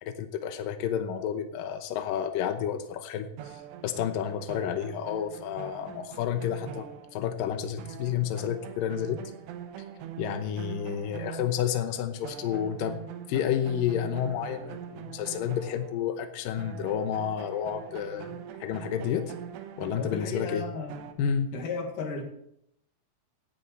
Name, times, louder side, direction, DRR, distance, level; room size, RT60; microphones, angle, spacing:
voice 1, 0.0-6.9 7.1-9.2 10.2-13.0 13.3-19.3 19.8-20.6 21.2-21.5, left 9 dB, 90° left, 8 dB, 2.0 m, -30 dB
sound 1, 3.4-7.5 7.8-11.9 12.2-16.3 16.6-21.1, right 10 dB, 75° right, 3.0 m, -43 dB
voice 2, 20.0-21.0 21.5-22.2, left 4 dB, 50° left, 3 dB, 3.2 m, -34 dB
16.5 x 10.0 x 4.3 m, 0.76 s
omnidirectional pair, 5.3 m